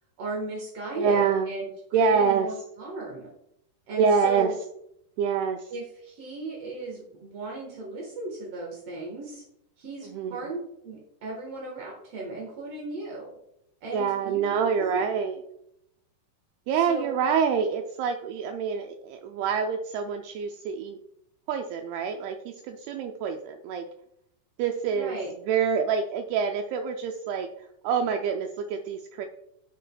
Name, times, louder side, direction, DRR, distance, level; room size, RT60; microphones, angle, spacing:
voice 1, 0.2-1.7 2.0-3.3 3.9-4.5 5.7-9.4 9.8-10.6 10.8-13.3 13.8-14.4 14.7-15.0 16.7-17.1 24.9-25.3, right 2 dB, 60° right, -2 dB, 1.7 m, -36 dB
voice 2, 0.9-1.5 1.9-2.5 4.0-4.5 5.2-5.7 10.1-10.4 13.9-15.4 16.7-21.0 21.5-23.9 24.6-25.2 25.5-27.5 27.8-29.3, right 6 dB, 80° right, 5 dB, 2.4 m, -26 dB
12.0 x 5.0 x 2.2 m, 0.76 s
omnidirectional pair, 4.6 m